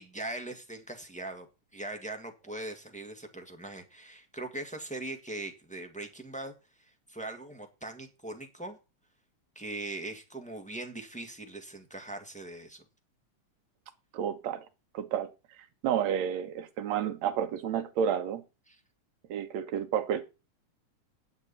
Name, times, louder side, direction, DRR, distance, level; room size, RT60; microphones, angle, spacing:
voice 1, 0.0-1.5 1.7-8.8 9.5-12.8 18.7-18.8, right 2 dB, 5° left, 1.1 m, -41 dB
voice 2, 14.1-14.6 14.9-15.3 15.8-18.4 19.3-20.2, right 8 dB, 65° right, 2.3 m, -30 dB
10.0 x 8.2 x 5.5 m
omnidirectional pair, 3.5 m